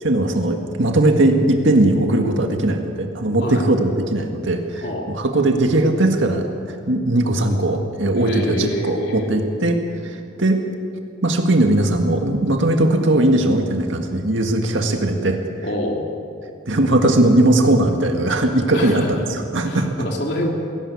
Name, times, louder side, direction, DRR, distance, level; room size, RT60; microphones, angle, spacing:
voice 1, 0.0-9.8 10.0-10.6 11.2-15.4 16.7-19.9, right 1 dB, 80° right, 3 dB, 1.9 m, -19 dB
voice 2, 8.2-9.4 15.6-16.1 18.7-19.1 19.6-20.5, left 1 dB, 55° left, 0 dB, 3.4 m, -26 dB
22.5 x 17.0 x 8.5 m, 2.5 s
head